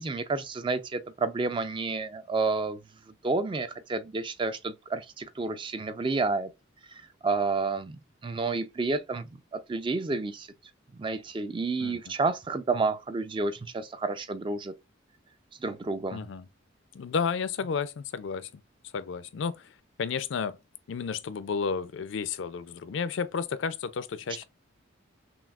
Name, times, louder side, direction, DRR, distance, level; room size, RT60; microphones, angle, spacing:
voice 1, 0.0-2.8 3.2-6.5 6.9-10.5 10.9-14.7 15.6-16.3, right 3 dB, 25° right, 0.3 m, -30 dB
voice 2, 11.8-12.1 16.1-16.5 16.9-18.6 18.9-20.6 20.9-24.4, left 6 dB, 65° left, 0.4 m, -32 dB
5.8 x 2.3 x 2.3 m
head